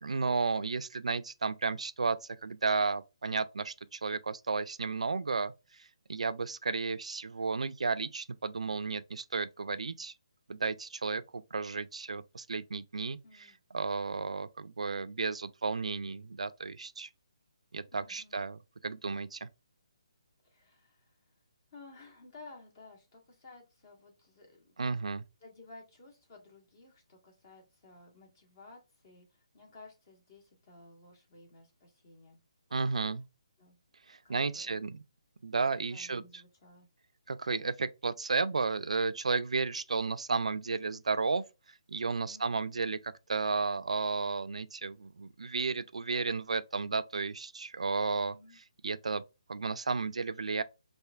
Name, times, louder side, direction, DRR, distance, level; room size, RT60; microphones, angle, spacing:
voice 1, 0.0-10.1 10.5-17.1 17.7-19.5 24.8-25.2 32.7-33.2 34.1-35.0 35.4-36.4 37.3-41.4 41.9-49.2 49.5-50.6, right 4 dB, 80° right, 0.4 m, -33 dB
voice 2, 13.2-13.5 17.9-18.4 20.4-21.1 21.7-25.0 25.4-32.4 32.9-33.0 33.6-33.8 34.2-34.7 35.9-36.9 42.3-42.7 48.1-48.6, left 3 dB, 40° left, 1.4 m, -55 dB
4.4 x 2.6 x 2.4 m
figure-of-eight pair, 150°, 3 cm